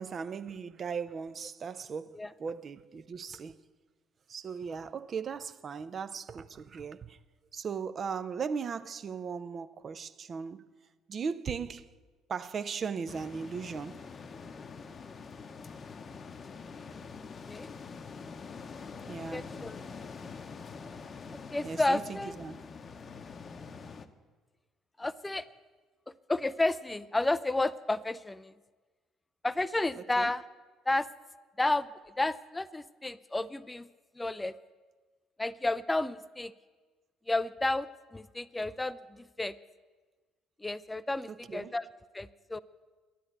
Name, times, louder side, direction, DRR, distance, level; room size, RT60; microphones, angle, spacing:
voice 1, 0.0-3.6 4.3-7.2 7.5-10.6 11.1-11.9 12.3-14.0 19.1-19.6 21.6-22.7 30.0-30.3 41.3-41.7, right 6 dB, 40° right, 0.6 m, -38 dB
sound 1, 13.1-24.1, left 5 dB, 35° left, 0.8 m, -45 dB
voice 2, 19.3-19.8 21.5-22.4 25.0-25.5 26.3-28.5 29.4-30.4 30.9-31.1 31.6-31.9 32.2-33.9 34.2-34.5 35.4-36.5 37.3-39.5 40.6-41.9 42.1-42.6, left 2 dB, 15° left, 0.4 m, -31 dB
12.0 x 10.0 x 7.9 m
figure-of-eight pair, 50°, 0 cm